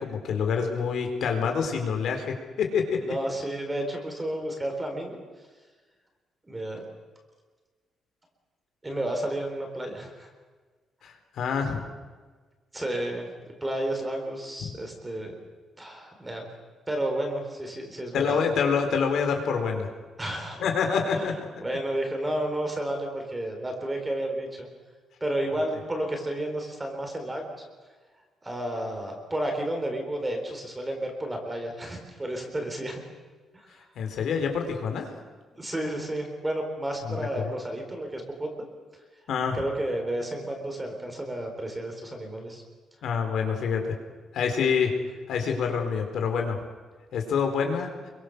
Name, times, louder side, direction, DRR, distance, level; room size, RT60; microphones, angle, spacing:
voice 1, 0.0-3.0 11.0-11.9 14.6-14.7 18.1-19.9 20.6-21.4 34.0-35.1 37.0-37.5 39.3-39.6 43.0-43.8 44.3-44.9 45.3-46.6 47.1-48.0, left 6 dB, 60° left, 4 dB, 4.1 m, -27 dB
voice 2, 3.0-5.2 6.4-6.8 8.8-10.3 12.7-13.3 13.6-15.3 15.8-16.5 16.9-18.4 20.2-20.6 21.1-24.7 25.2-27.4 28.4-33.0 33.5-33.7 35.5-38.6 39.5-42.6, right 1 dB, 10° right, 3 dB, 3.9 m, -31 dB
27.5 x 23.5 x 6.7 m, 1.4 s
cardioid pair, 175°, 0 cm